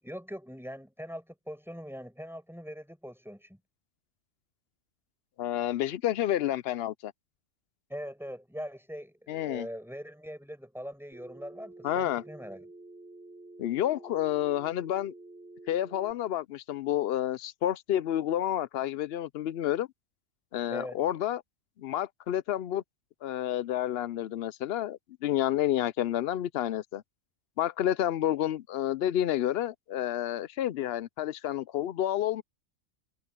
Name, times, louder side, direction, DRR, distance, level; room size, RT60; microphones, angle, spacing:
voice 1, 0.0-3.6 7.9-12.7 20.7-21.0, equal, ahead, 7.7 m, -42 dB
voice 2, 5.4-7.1 9.3-9.7 11.8-12.2 13.6-15.1 15.7-19.9 20.5-21.4 21.8-22.8 23.2-27.0 27.6-32.4, left 12 dB, 65° left, 0.7 m, -30 dB
Telephone, 11.1-16.1, right 2 dB, 40° left, 7.6 m, -49 dB
omnidirectional pair, 1.3 m